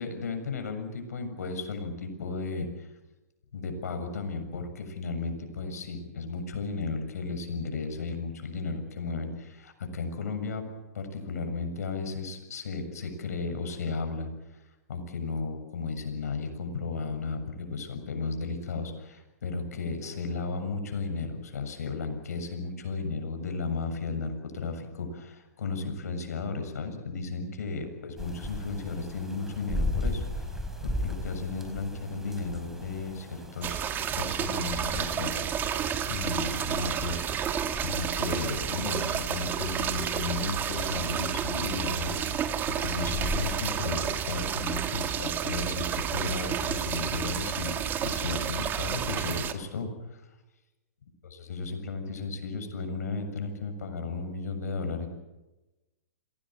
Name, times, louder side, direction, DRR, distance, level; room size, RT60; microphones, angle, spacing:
voice 1, 0.0-2.9 3.5-10.6 10.9-14.6 14.9-30.5 30.8-33.9 34.2-37.3 37.5-42.5 42.8-47.8 48.0-50.2 51.3-55.1, left 4 dB, 75° left, 7 dB, 7.1 m, -34 dB
sound 1, 28.2-44.2, left 1 dB, 5° right, 5.0 m, -38 dB
sound 2, 33.6-49.5, right 8 dB, 25° right, 2.0 m, -31 dB
28.0 x 19.0 x 7.8 m, 1.1 s
hypercardioid pair, 130°, 9 cm